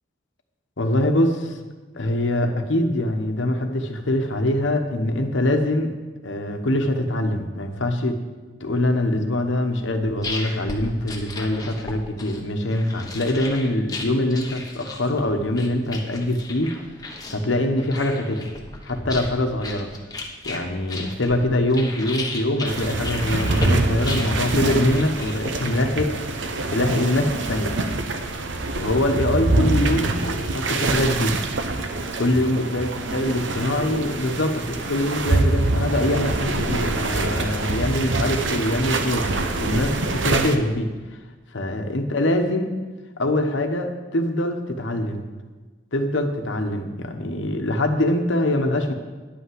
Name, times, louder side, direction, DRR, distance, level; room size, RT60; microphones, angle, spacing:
voice 1, 0.8-1.6 1.9-5.9 6.2-8.2 8.6-16.7 17.3-18.5 18.8-19.9 20.4-26.1 26.4-27.8 28.8-31.4 32.2-39.3 39.6-40.9 41.5-42.7 43.2-45.2 45.9-48.9, left 1 dB, 70° left, 5 dB, 1.1 m, -23 dB
sound 1, 9.8-25.9, left 2 dB, 20° left, 1.1 m, -35 dB
sound 2, 22.7-40.6, right 2 dB, 70° right, 0.8 m, -25 dB
10.5 x 5.7 x 7.8 m, 1.3 s
head